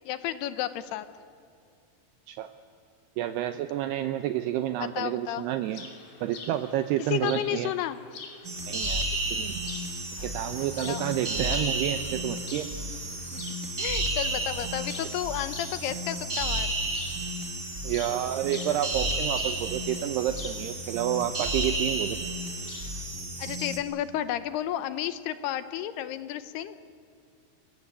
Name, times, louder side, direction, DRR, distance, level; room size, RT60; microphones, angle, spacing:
voice 1, 0.1-1.1 4.8-5.5 7.0-8.0 10.2-10.3 10.6-11.1 13.3-13.4 13.8-16.7 23.4-26.8, left 12 dB, 75° left, 13 dB, 2.7 m, -32 dB
voice 2, 3.2-5.8 6.2-7.7 8.7-9.0 9.3-9.6 10.2-12.7 17.8-22.2, right 12 dB, 75° right, 9 dB, 2.7 m, -29 dB
sound 1, 5.6-23.0, left 5 dB, 60° left, 4.6 m, -46 dB
sound 2, 8.4-23.8, right 1 dB, 25° right, 1.9 m, -32 dB
29.5 x 21.5 x 8.6 m, 2.5 s
omnidirectional pair, 5.1 m